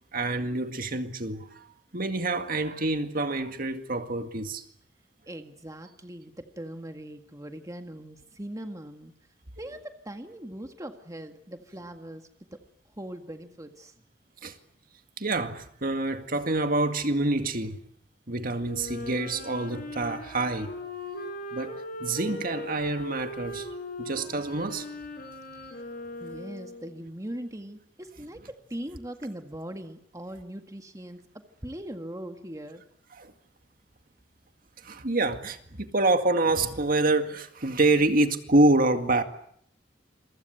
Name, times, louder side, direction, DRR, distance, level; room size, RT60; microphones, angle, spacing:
voice 1, 0.1-1.7 1.9-4.6 14.4-14.5 15.2-17.8 18.3-20.7 21.5-23.7 24.0-24.9 33.2-33.3 34.8-39.2, right 2 dB, 50° right, 2.1 m, -26 dB
voice 2, 5.3-9.1 9.6-12.6 13.0-13.9 26.2-32.8, right 1 dB, 20° right, 1.8 m, -40 dB
Wind instrument woodwind instrument, 18.6-27.0, left 1 dB, 50° left, 6.3 m, -39 dB
28.0 x 23.5 x 7.9 m
head